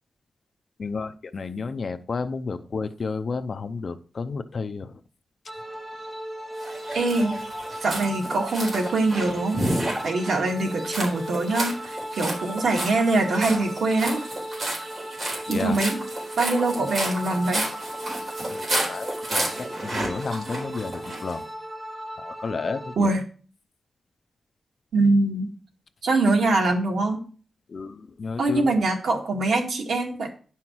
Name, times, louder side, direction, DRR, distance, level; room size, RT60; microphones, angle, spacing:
voice 1, 0.8-4.9 15.5-15.8 18.5-21.5 22.2-23.2 27.7-28.8, left 4 dB, 45° left, 9 dB, 0.6 m, -32 dB
sound 1, 5.5-23.0, equal, 10° right, 1.0 m, -36 dB
sound 2, 6.6-21.3, right 1 dB, 45° right, 4.2 m, -32 dB
voice 2, 6.9-7.4 7.8-9.7 10.0-14.2 15.5-16.0 16.4-17.7 23.0-23.2 24.9-25.5 26.0-27.2 28.4-30.3, right 2 dB, 85° right, 1 dB, 2.0 m, -23 dB
10.5 x 5.7 x 4.6 m, 0.40 s
wide cardioid pair, 170°, 0 cm